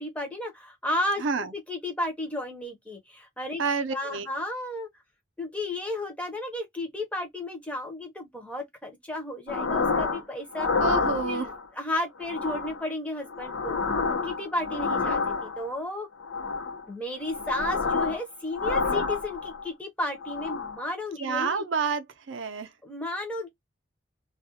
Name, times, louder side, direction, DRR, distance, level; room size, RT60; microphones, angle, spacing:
voice 1, 0.0-1.2 1.5-3.6 3.9-4.9 5.4-10.7 11.2-11.5 11.7-13.8 14.2-16.1 16.9-21.6 22.8-23.5, left 1 dB, 5° left, 0.6 m, -33 dB
voice 2, 1.2-1.5 3.6-4.3 10.8-11.5 21.2-22.7, right 5 dB, 65° right, 0.4 m, -29 dB
sound 1, 9.5-10.2 10.5-11.6 12.2-12.8 13.2-15.7 16.2-16.8 17.2-18.2 18.5-19.7 20.1-20.8, left 4 dB, 70° left, 0.7 m, -29 dB
2.3 x 2.1 x 2.7 m
head